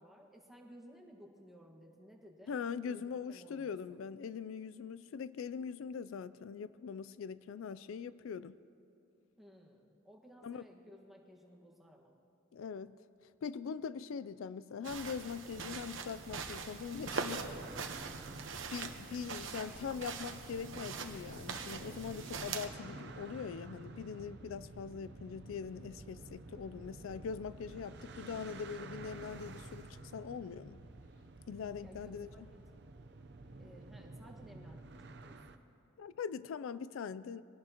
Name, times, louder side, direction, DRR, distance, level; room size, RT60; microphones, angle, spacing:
voice 1, 0.0-2.6 2.9-4.0 9.4-12.1 31.8-32.8 33.6-35.4, equal, ahead, -1 dB, 1.4 m, -57 dB
voice 2, 2.5-8.6 10.4-10.6 12.5-13.0 13.4-17.5 18.7-30.8 31.5-32.3 36.0-37.4, left 6 dB, 80° left, 16 dB, 0.4 m, -42 dB
sound 1, 14.8-22.7, right 4 dB, 70° right, 1.0 m, -42 dB
sound 2, 16.9-35.6, right 2 dB, 55° right, 0.7 m, -51 dB
23.0 x 18.0 x 2.9 m, 2.6 s
head